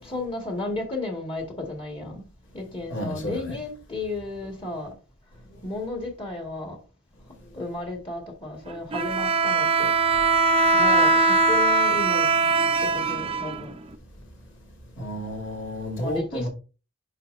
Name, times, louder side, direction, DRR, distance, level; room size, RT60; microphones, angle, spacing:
voice 1, 0.0-2.2 2.5-4.9 5.6-6.8 7.5-9.9 10.7-12.3 12.8-13.8 16.0-16.5, left 2 dB, 25° left, 1.8 m, -33 dB
voice 2, 2.9-3.6 15.0-16.5, equal, 60° left, 2.5 m, -31 dB
Bowed string instrument, 8.9-13.9, right 3 dB, 25° right, 0.5 m, -21 dB
11.0 x 4.2 x 2.6 m
head